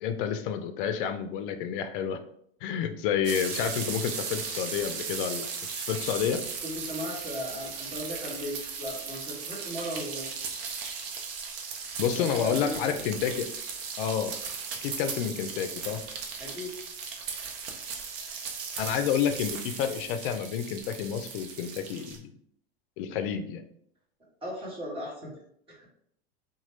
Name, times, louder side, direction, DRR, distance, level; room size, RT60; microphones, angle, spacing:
voice 1, 0.0-2.2 2.6-5.5 5.8-6.4 12.0-13.5 14.0-14.3 14.8-16.0 18.8-22.3 23.0-23.6, left 8 dB, 60° left, 9 dB, 0.4 m, -29 dB
sound 1, 3.2-22.2, right 5 dB, 65° right, 0.7 m, -37 dB
voice 2, 6.6-10.3 12.2-13.0 16.4-16.7 24.4-25.3 25.7-25.8, equal, 15° right, -5 dB, 1.3 m, -37 dB
2.9 x 2.2 x 3.0 m, 0.68 s
hypercardioid pair, 115°, 31 cm